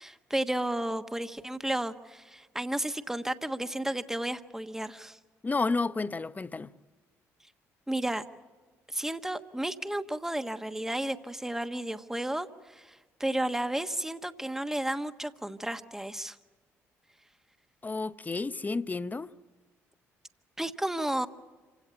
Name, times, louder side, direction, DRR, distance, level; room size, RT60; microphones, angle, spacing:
voice 1, 0.0-5.2 7.9-8.2 8.9-16.4 20.6-21.3, right 1 dB, 5° right, 1.3 m, -33 dB
voice 2, 5.4-6.7 17.8-19.3, left 3 dB, 25° left, 0.8 m, -31 dB
26.5 x 17.0 x 8.3 m
supercardioid pair, 60°, 7 cm